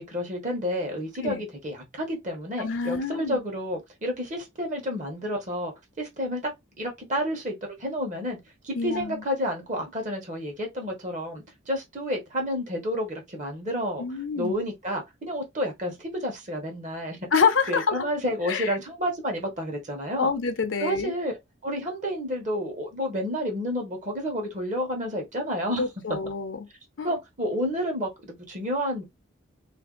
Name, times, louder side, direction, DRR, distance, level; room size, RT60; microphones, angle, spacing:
voice 1, 0.0-6.5 6.8-8.4 8.6-17.2 17.7-20.3 20.8-25.8 27.0-29.0, equal, 40° right, 1.0 m, -30 dB
voice 2, 2.6-3.4 8.8-9.2 14.0-14.5 17.3-18.1 18.4-18.8 20.2-21.1 25.8-26.6 27.0-27.1, left 5 dB, 70° left, 0.6 m, -26 dB
2.6 x 2.6 x 3.8 m
head